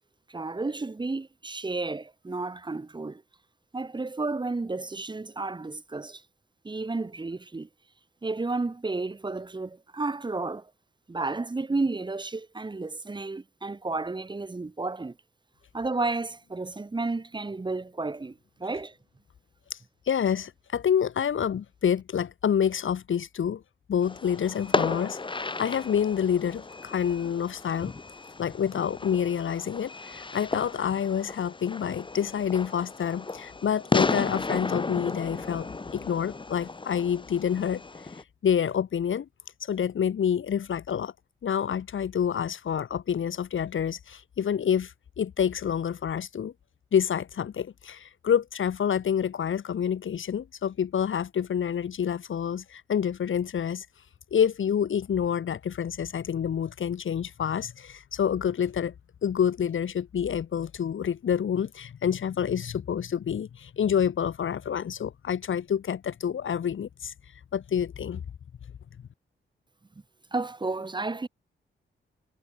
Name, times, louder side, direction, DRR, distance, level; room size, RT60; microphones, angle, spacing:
voice 1, 0.3-3.2 3.7-6.2 6.6-7.7 8.2-10.7 11.1-15.1 15.7-19.0 70.3-71.3, right 3 dB, 20° right, 2.9 m, -32 dB
voice 2, 20.1-23.6 23.9-25.2 25.6-27.9 28.4-35.7 35.9-37.8 38.4-39.3 39.6-41.1 41.4-46.5 46.9-53.9 54.3-58.9 59.2-67.1 67.5-68.2, left 8 dB, 75° left, 6.5 m, -28 dB
Fireworks, 24.0-38.2, left 3 dB, 25° left, 3.0 m, -34 dB
wide cardioid pair, 155°, 21 cm